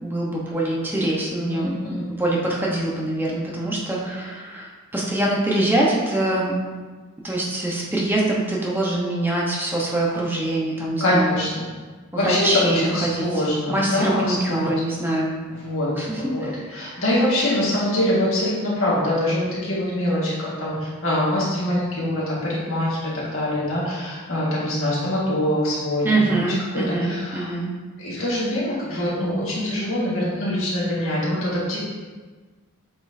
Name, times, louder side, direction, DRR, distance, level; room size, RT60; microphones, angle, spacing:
voice 1, 0.0-6.5 7.2-11.3 12.1-13.3 13.7-15.3 15.9-16.6 26.0-27.7, right 1 dB, 10° right, -4 dB, 0.9 m, -24 dB
voice 2, 1.5-2.1 11.0-11.7 12.1-14.7 15.5-15.9 16.3-26.2 26.7-27.5 28.0-31.8, left 1 dB, 60° left, -7 dB, 1.7 m, -24 dB
8.0 x 4.4 x 2.7 m, 1.4 s
head